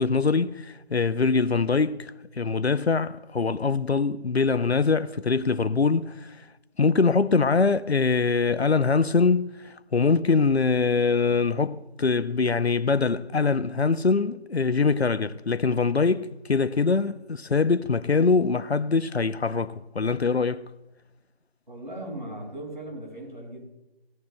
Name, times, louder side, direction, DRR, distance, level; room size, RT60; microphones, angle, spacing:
voice 1, 0.0-6.5 6.8-20.6, left 4 dB, 85° left, 0.7 m, -23 dB
voice 2, 21.7-23.7, right 1 dB, 50° right, 5.9 m, -38 dB
20.0 x 17.0 x 2.2 m
figure-of-eight pair, 180°, 32 cm